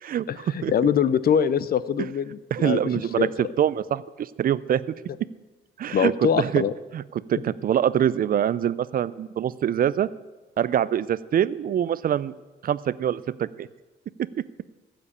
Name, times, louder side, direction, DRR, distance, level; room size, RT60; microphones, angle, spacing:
voice 1, 0.3-2.8 3.2-3.3 5.9-6.7, left 8 dB, 50° left, 16 dB, 0.5 m, -23 dB
voice 2, 2.5-3.3 3.6-4.8 5.8-6.1 6.4-6.6 6.9-7.0 7.3-10.1 10.6-12.3 12.6-13.7, right 10 dB, 45° right, 18 dB, 0.4 m, -24 dB
15.0 x 5.2 x 8.6 m, 1.2 s
cardioid pair, 90°, 20 cm